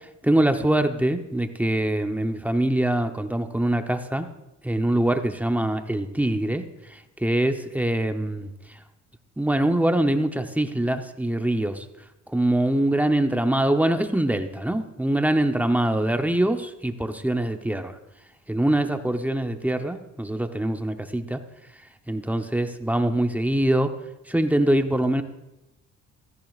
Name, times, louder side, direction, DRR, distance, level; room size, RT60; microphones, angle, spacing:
voice 1, 0.2-4.3 4.6-6.7 7.2-8.5 9.4-11.8 12.3-17.9 18.5-21.4 22.1-23.9 24.3-25.2, right 1 dB, 5° right, 6 dB, 0.8 m, -23 dB
15.5 x 14.0 x 2.4 m, 0.93 s
cardioid pair, 115°, 31 cm